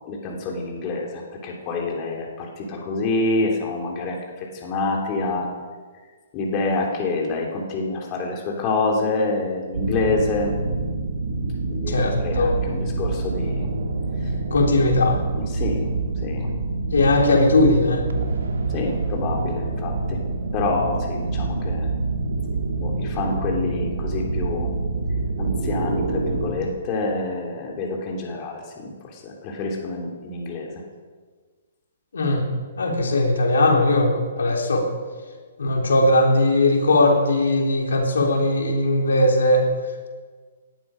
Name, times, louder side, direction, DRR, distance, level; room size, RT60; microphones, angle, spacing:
voice 1, 0.0-5.5 6.3-10.6 11.7-13.7 15.4-15.9 16.2-16.5 18.7-20.2 20.5-21.9 22.8-24.7 25.4-30.8, left 3 dB, 30° left, 0 dB, 3.2 m, -27 dB
sound 1, 9.7-26.5, right 3 dB, 85° right, 2.7 m, -26 dB
voice 2, 11.9-12.5 14.5-15.2 16.9-18.0 32.1-32.5 32.8-34.9 35.6-39.7, left 2 dB, 85° left, 0 dB, 3.5 m, -19 dB
19.0 x 12.0 x 5.2 m, 1.5 s
hypercardioid pair, 145°, 0 cm